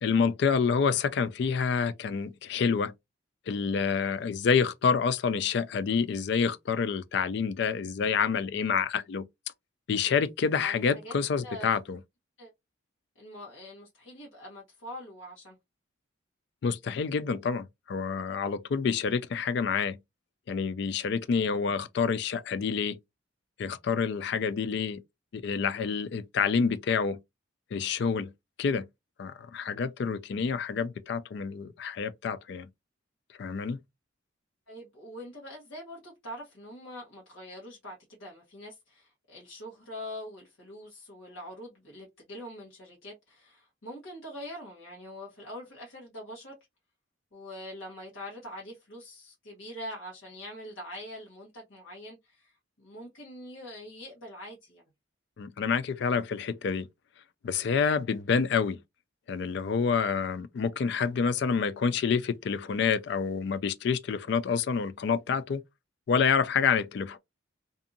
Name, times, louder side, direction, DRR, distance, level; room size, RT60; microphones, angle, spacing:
voice 1, 0.0-2.9 3.5-9.2 9.9-12.0 16.6-20.0 20.5-23.0 23.6-25.0 25.3-27.2 27.7-28.3 28.6-28.9 29.2-32.7 33.4-33.8 55.4-56.9 57.4-58.8 59.3-65.6 66.1-67.2, left 6 dB, 55° left, 0.3 m, -28 dB
voice 2, 10.6-11.1 11.4-11.7 12.4-12.5 13.1-15.6 34.7-46.5 47.3-54.9, equal, 80° left, 1.1 m, -44 dB
2.7 x 2.5 x 2.5 m
head